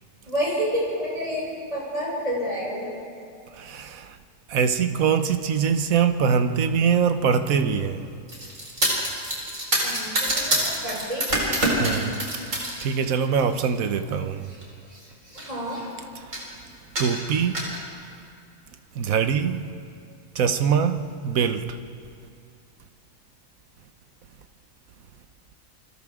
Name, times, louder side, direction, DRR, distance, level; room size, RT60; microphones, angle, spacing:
voice 1, 0.3-2.9 9.8-11.6 15.5-15.8, equal, 30° right, 7.1 m, -29 dB
voice 2, 3.5-4.2 4.5-8.1 11.8-14.5 16.1-16.4 17.0-17.7 18.9-19.7 20.3-21.8, right 6 dB, 85° right, 1.4 m, -23 dB
sound 1, 8.3-12.8 13.2-13.7 14.5-14.6 14.9-15.0 15.3-15.9 16.3-16.5 17.0-17.8, right 1 dB, 65° right, 4.8 m, -26 dB
29.0 x 24.0 x 3.7 m
omnidirectional pair, 1.4 m